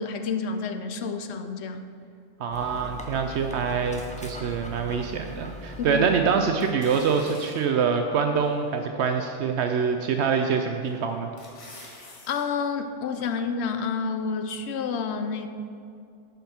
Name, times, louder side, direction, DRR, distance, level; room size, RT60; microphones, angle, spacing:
voice 1, 0.0-1.9 5.8-6.1 12.3-15.5, left 5 dB, 70° left, 8 dB, 0.9 m, -29 dB
voice 2, 2.4-11.3, right 6 dB, 75° right, 5 dB, 0.8 m, -25 dB
Dog, 2.5-6.7, equal, 10° left, 0.5 m, -40 dB
sound 1, 6.6-7.8 8.4-8.5 10.1-10.5 10.9-12.4 12.8-12.9, left 2 dB, 85° left, 1.9 m, -45 dB
11.5 x 5.3 x 4.4 m, 2.4 s
omnidirectional pair, 1.2 m